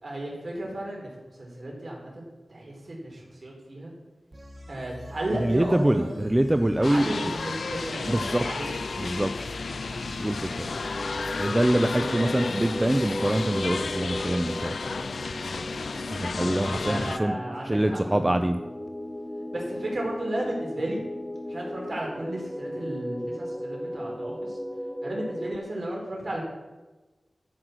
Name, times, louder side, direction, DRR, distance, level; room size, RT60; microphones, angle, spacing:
voice 1, 0.0-3.9 4.7-6.2 6.8-8.8 10.6-10.9 12.0-12.3 15.7-16.0 16.5-18.3 19.5-21.0 21.5-24.6 25.0-26.4, right 1 dB, 55° right, -2 dB, 4.5 m, -34 dB
sound 1, 4.3-11.9, right 1 dB, 40° right, 1.7 m, -44 dB
voice 2, 5.4-7.3 8.1-8.5 9.0-9.3 10.2-10.7 11.4-14.8 16.1-17.4 17.6-18.6, right 1 dB, 20° right, 8 dB, 0.6 m, -25 dB
sound 2, 6.8-17.2, left 4 dB, 80° left, 0.3 m, -33 dB
sound 3, 10.6-25.6, equal, ahead, 1.1 m, -36 dB
13.0 x 5.8 x 6.4 m, 1.2 s
cardioid pair, 45°, 0 cm